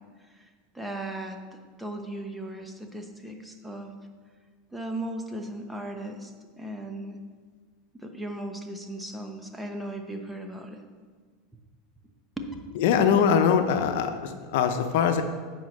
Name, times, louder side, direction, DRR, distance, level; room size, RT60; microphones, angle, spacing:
voice 1, 0.7-1.4 1.8-3.9 4.7-6.3 6.6-7.2 7.9-10.8 12.4-12.5, right 1 dB, 5° right, 4 dB, 1.1 m, -37 dB
voice 2, 12.7-15.2, left 7 dB, 75° left, 7 dB, 0.8 m, -22 dB
9.4 x 4.6 x 6.6 m, 1.5 s
supercardioid pair, 115°, 0 cm